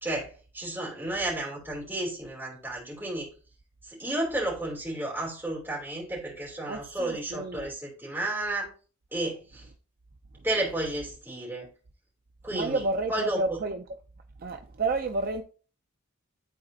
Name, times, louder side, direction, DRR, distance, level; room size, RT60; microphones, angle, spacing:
voice 1, 0.0-3.3 3.9-8.7 9.1-9.7 10.4-11.7 12.4-12.8 13.1-13.4, right 1 dB, 10° right, 3.0 m, -32 dB
voice 2, 6.7-7.7 12.5-13.8 14.4-15.4, right 3 dB, 40° right, 0.4 m, -30 dB
11.5 x 4.1 x 2.7 m
head